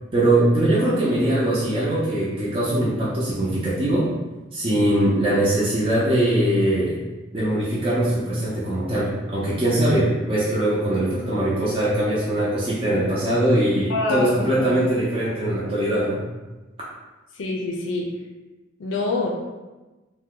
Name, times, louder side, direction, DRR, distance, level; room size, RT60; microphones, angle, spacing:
voice 1, 0.1-4.1 4.5-7.0 7.3-16.2, right 1 dB, 30° right, -8 dB, 0.5 m, -21 dB
voice 2, 13.9-14.8 17.3-18.1 18.8-19.3, left 2 dB, 85° left, 0 dB, 0.5 m, -26 dB
2.7 x 2.1 x 3.6 m, 1.1 s
head